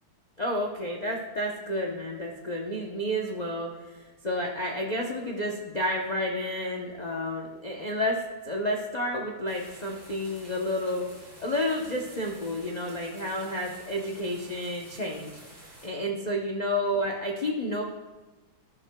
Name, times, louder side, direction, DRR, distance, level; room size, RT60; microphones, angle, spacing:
voice 1, 0.4-8.2 8.5-15.3 15.8-17.8, left 1 dB, 80° left, 0 dB, 0.3 m, -30 dB
sound 1, 9.5-15.9, right 1 dB, 20° right, 2.7 m, -50 dB
12.0 x 11.0 x 2.2 m, 1.2 s
omnidirectional pair, 2.1 m